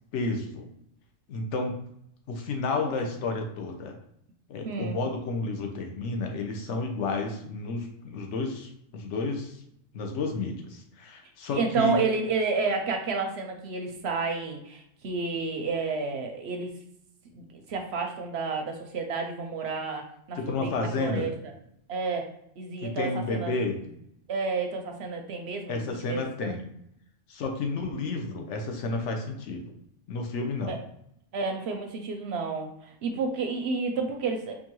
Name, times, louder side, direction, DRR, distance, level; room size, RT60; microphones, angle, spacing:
voice 1, 0.1-0.7 1.3-1.8 2.3-3.9 4.5-9.6 9.9-12.0 20.4-21.3 22.8-23.8 25.7-26.7 27.3-29.6 30.1-30.8, left 3 dB, 65° left, 3 dB, 1.0 m, -31 dB
voice 2, 4.6-5.0 11.5-16.7 17.3-21.3 21.9-22.3 22.6-23.5 24.3-26.6 30.7-30.8 31.3-34.5, right 4 dB, 65° right, 4 dB, 0.7 m, -30 dB
4.5 x 2.6 x 3.0 m, 0.73 s
omnidirectional pair, 1.4 m